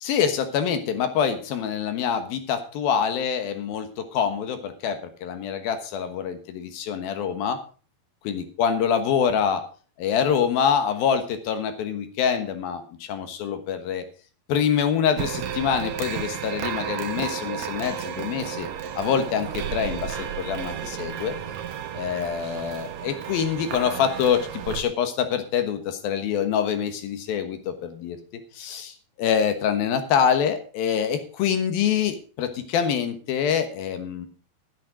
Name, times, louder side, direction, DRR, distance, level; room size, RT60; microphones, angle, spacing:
voice 1, 0.0-7.6 8.2-9.7 10.0-14.0 14.5-18.7 19.0-21.4 21.9-28.2 28.6-34.3, left 7 dB, 75° left, 8 dB, 3.1 m, -25 dB
sound 1, 15.2-24.8, right 9 dB, 65° right, 1.9 m, -33 dB
11.0 x 10.0 x 4.9 m, 0.38 s
omnidirectional pair, 4.4 m